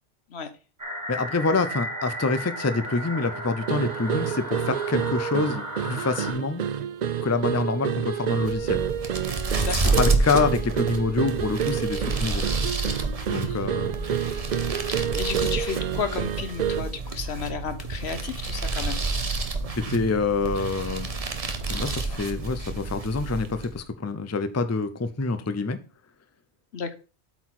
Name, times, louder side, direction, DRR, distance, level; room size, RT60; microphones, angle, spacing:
sound 1, 0.8-6.3, right 1 dB, 15° right, 1.8 m, -35 dB
voice 1, 1.1-6.6 7.2-8.8 9.9-12.4 13.3-14.0 19.8-21.1 21.7-25.8, left 3 dB, 20° left, 0.5 m, -26 dB
sound 2, 3.7-17.0, right 9 dB, 55° right, 0.5 m, -29 dB
sound 3, 8.3-23.8, right 3 dB, 35° right, 1.0 m, -29 dB
voice 2, 9.6-10.0 13.4-13.7 15.2-19.0 26.7-26.9, left 6 dB, 70° left, 1.3 m, -32 dB
8.2 x 4.5 x 6.0 m
omnidirectional pair, 1.2 m